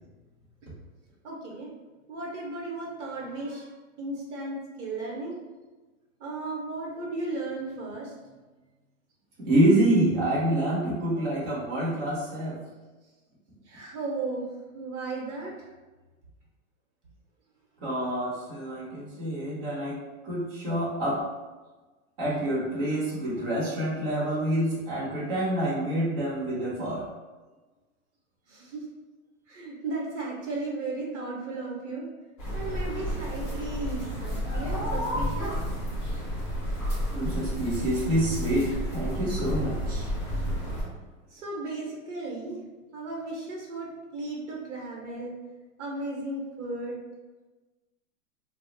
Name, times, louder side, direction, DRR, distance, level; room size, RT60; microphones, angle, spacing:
voice 1, 1.2-1.7 2.1-3.7 4.0-5.4 6.2-8.3 13.7-14.5 14.7-15.7 28.5-28.8 29.5-32.1 32.5-35.5 41.3-42.6 42.9-45.3 45.8-47.0, right 2 dB, 60° right, -2 dB, 0.9 m, -35 dB
voice 2, 9.4-12.6 17.8-20.0 20.2-21.2 22.2-27.0 37.1-40.1 40.6-40.7, right 1 dB, 25° right, -8 dB, 0.7 m, -27 dB
sound 1, 32.4-40.8, equal, 15° left, 0.5 m, -31 dB
2.3 x 2.0 x 3.8 m, 1.2 s
hypercardioid pair, 160°, 41 cm